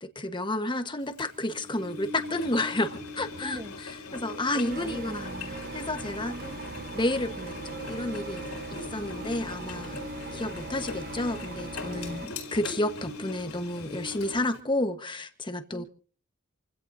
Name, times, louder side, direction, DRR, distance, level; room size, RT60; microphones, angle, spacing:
voice 1, 0.0-3.6 4.1-5.3 5.7-6.4 6.9-10.0 10.3-15.8, left 1 dB, 20° left, 1.3 m, -31 dB
Engine, 1.2-14.6, left 3 dB, 90° left, 4.8 m, -40 dB
voice 2, 3.4-3.8 4.5-5.6 6.3-7.0 15.7-15.8, equal, 15° right, 1.0 m, -42 dB
sound 1, 4.2-10.4, right 1 dB, 65° right, 4.8 m, -52 dB
sound 2, 4.7-12.3, right 3 dB, 45° right, 1.1 m, -40 dB
28.0 x 16.5 x 2.7 m
head